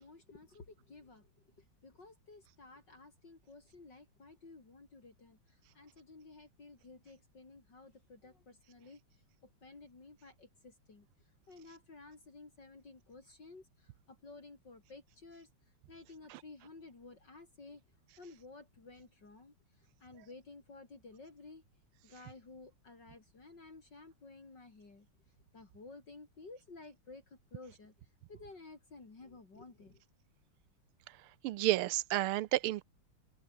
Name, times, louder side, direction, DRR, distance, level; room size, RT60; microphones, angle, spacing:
voice 1, 0.0-9.0 9.4-11.1 11.5-15.5 15.9-17.8 18.2-21.6 22.0-25.1 25.5-27.9 28.3-30.0, left 3 dB, 50° left, 4.7 m, -54 dB
voice 2, 31.4-32.8, right 16 dB, 80° right, 1.5 m, -31 dB
open air
omnidirectional pair, 2.4 m